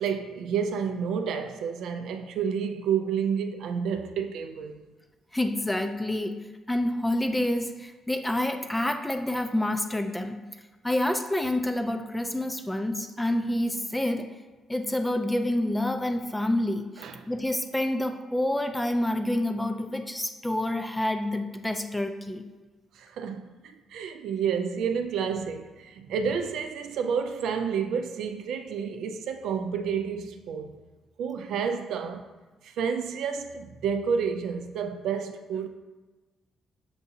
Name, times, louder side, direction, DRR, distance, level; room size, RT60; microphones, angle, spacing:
voice 1, 0.0-4.8 17.0-17.3 23.0-23.5 23.9-30.8 31.2-32.2 32.6-35.7, right 6 dB, 80° right, 0.3 m, -30 dB
voice 2, 5.3-6.4 6.7-10.4 10.8-14.3 14.7-22.4, left 1 dB, 10° left, 0.4 m, -28 dB
6.6 x 2.7 x 2.7 m
cardioid pair, 90°, 0 cm